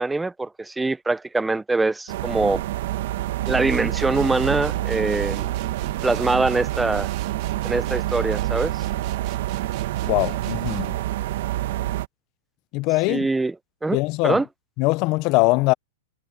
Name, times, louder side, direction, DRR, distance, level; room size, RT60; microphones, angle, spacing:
voice 1, 0.0-2.6 3.5-5.5 6.0-7.1 7.6-8.8 13.1-13.5 13.8-14.0 14.2-14.5, right 3 dB, 5° right, 0.7 m, -23 dB
sound 1, 2.1-12.1, right 14 dB, 65° right, 1.4 m, -27 dB
sound 2, 3.5-11.1, right 22 dB, 45° right, 2.8 m, -39 dB
voice 2, 10.1-10.9 12.7-13.3 13.9-14.4 14.8-15.7, left 24 dB, 40° left, 0.7 m, -21 dB
hypercardioid pair, 140°, 0 cm